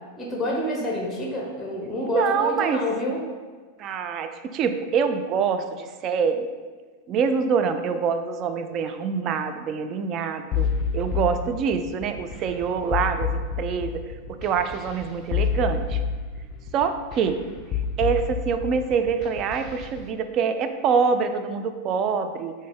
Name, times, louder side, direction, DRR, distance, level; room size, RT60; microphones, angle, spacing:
voice 1, 0.2-3.2, left 1 dB, 10° left, -2 dB, 0.8 m, -28 dB
voice 2, 2.0-2.9 3.8-6.5 7.1-10.7 10.9-14.0 14.3-16.0 16.7-17.4 18.0-22.5, right 6 dB, 35° right, 8 dB, 0.3 m, -25 dB
sound 1, 10.5-20.0, left 6 dB, 35° left, 0.5 m, -29 dB
5.1 x 2.7 x 3.4 m, 1.4 s
figure-of-eight pair, 90°, 0 cm